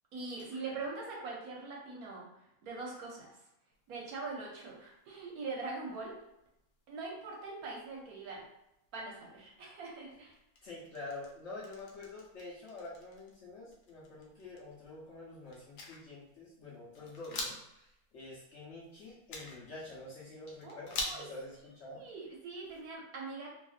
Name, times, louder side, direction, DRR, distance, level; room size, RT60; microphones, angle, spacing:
voice 1, 0.1-2.3 2.6-3.3 3.9-6.1 6.9-8.5 8.9-10.3 20.6-21.3 21.9-23.5, right 3 dB, 70° right, -2 dB, 1.1 m, -42 dB
sound 1, 3.7-22.9, left 2 dB, 75° left, 1.1 m, -49 dB
voice 2, 10.6-22.0, left 2 dB, 55° left, -7 dB, 0.9 m, -47 dB
2.9 x 2.5 x 2.4 m, 0.85 s
omnidirectional pair, 1.7 m